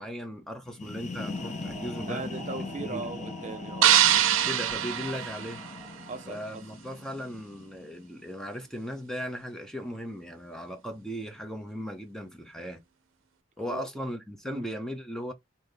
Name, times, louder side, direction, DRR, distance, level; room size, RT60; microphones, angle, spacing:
voice 1, 0.0-2.3 2.6-3.1 4.4-5.6 6.3-12.8 13.6-15.3, equal, 5° left, 0.8 m, -37 dB
sound 1, 0.7-8.3, left 3 dB, 35° left, 0.6 m, -41 dB
sound 2, 1.2-6.3, right 1 dB, 20° right, 1.8 m, -45 dB
voice 2, 2.1-4.0 6.1-6.6 13.7-13.9 14.5-14.7, right 3 dB, 40° right, 0.5 m, -38 dB
sound 3, 3.8-6.1, right 11 dB, 85° right, 0.5 m, -24 dB
4.2 x 2.7 x 3.3 m
head